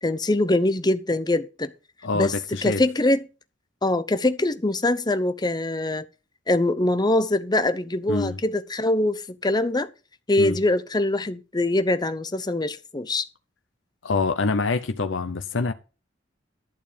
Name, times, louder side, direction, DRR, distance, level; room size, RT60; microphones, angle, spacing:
voice 1, 0.0-1.7 2.1-2.3 2.6-3.2 3.8-6.0 6.5-9.9 10.3-13.3, left 2 dB, 20° left, 0.8 m, -23 dB
voice 2, 2.0-2.8 8.1-8.4 10.4-10.6 14.0-15.7, left 3 dB, 85° left, 0.8 m, -25 dB
11.5 x 6.8 x 5.2 m
head